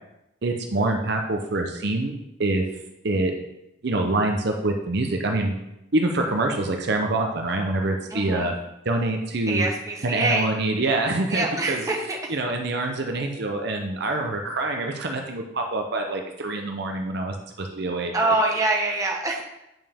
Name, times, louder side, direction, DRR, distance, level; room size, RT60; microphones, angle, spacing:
voice 1, 0.4-2.6 3.0-3.3 3.8-5.5 5.9-8.5 8.8-9.7 10.0-11.9 12.3-18.3, right 2 dB, 60° right, 3 dB, 0.8 m, -25 dB
voice 2, 8.1-8.5 9.5-10.5 11.3-12.3 18.1-19.4, right 2 dB, 15° right, -1 dB, 1.1 m, -25 dB
8.9 x 5.5 x 3.6 m, 0.89 s
head